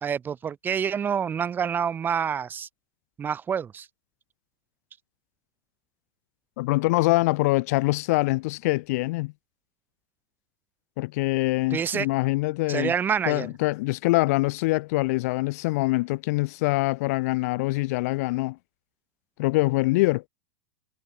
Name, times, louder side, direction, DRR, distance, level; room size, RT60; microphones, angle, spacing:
voice 1, 0.0-2.7 3.2-3.9 11.7-12.1 12.7-13.5, right 7 dB, 20° right, 0.4 m, -27 dB
voice 2, 6.6-9.3 11.0-12.9 13.3-18.6 19.4-20.3, left 22 dB, 55° left, 0.7 m, -24 dB
figure-of-eight pair, 90°, 10 cm